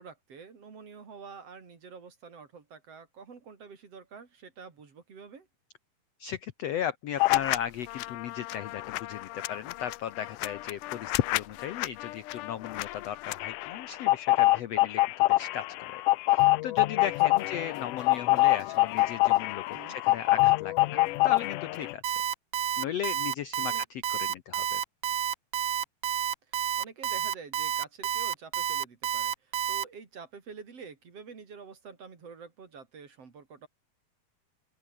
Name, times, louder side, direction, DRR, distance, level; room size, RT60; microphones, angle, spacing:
voice 1, 0.0-5.5 17.4-17.5 19.7-20.0 23.7-23.8 26.5-33.7, right 5 dB, 40° right, 4.2 m, -47 dB
voice 2, 6.2-16.0 16.3-22.2 22.8-24.8, left 9 dB, 70° left, 1.5 m, -36 dB
sound 1, 7.2-7.6 7.9-21.9, left 19 dB, 90° left, 1.8 m, -26 dB
Alarm, 22.0-29.8, right 12 dB, 85° right, 1.3 m, -29 dB
open air
omnidirectional pair, 4.3 m